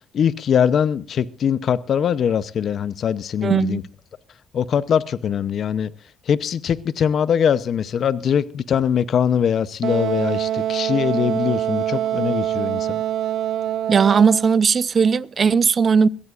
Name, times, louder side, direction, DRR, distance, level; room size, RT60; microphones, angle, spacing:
voice 1, 0.1-3.8 4.5-5.9 6.3-13.0, left 8 dB, 60° left, 0.7 m, -22 dB
voice 2, 3.4-3.8 13.9-16.1, right 6 dB, 45° right, 0.6 m, -17 dB
Wind instrument woodwind instrument, 9.8-14.5, right 11 dB, 80° right, 0.7 m, -24 dB
22.5 x 16.0 x 2.5 m
cardioid pair, 90°, 0 cm